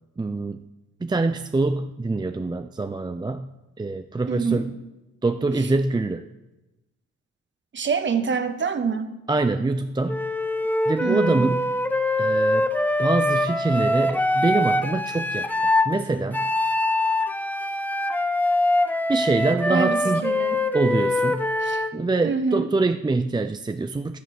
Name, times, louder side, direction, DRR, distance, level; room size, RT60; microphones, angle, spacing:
voice 1, 0.2-0.6 1.0-3.5 3.8-4.7 5.2-6.3 9.3-10.2 10.9-11.6 12.2-12.7 13.0-16.5 19.1-20.2 20.7-21.5 21.9-24.2, right 3 dB, 15° right, 9 dB, 0.6 m, -24 dB
voice 2, 4.3-4.7 5.6-5.7 7.7-9.1 11.0-11.4 19.7-20.6 21.6-21.8 22.2-22.7, right 5 dB, 40° right, 9 dB, 1.5 m, -26 dB
Wind instrument woodwind instrument, 10.1-15.9 16.3-22.0, left 1 dB, 5° left, 1.0 m, -23 dB
11.0 x 10.5 x 8.1 m, 1.0 s
cardioid pair, 90°, 30 cm